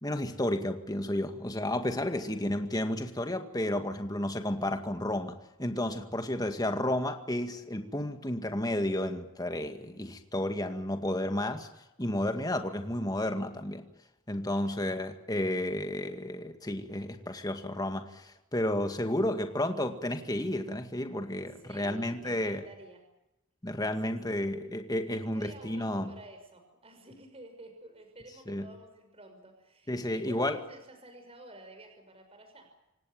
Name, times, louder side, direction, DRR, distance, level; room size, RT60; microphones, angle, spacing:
voice 1, 0.0-11.7 12.0-13.8 14.3-22.6 23.6-26.1 28.5-28.7 29.9-30.6, left 1 dB, 20° left, 6 dB, 2.1 m, -32 dB
voice 2, 2.1-2.5 6.2-6.5 14.6-14.8 21.6-23.0 24.0-24.2 24.4-24.5 25.1-32.7, right 1 dB, 25° right, 6 dB, 6.0 m, -51 dB
27.5 x 17.5 x 9.0 m, 0.94 s
head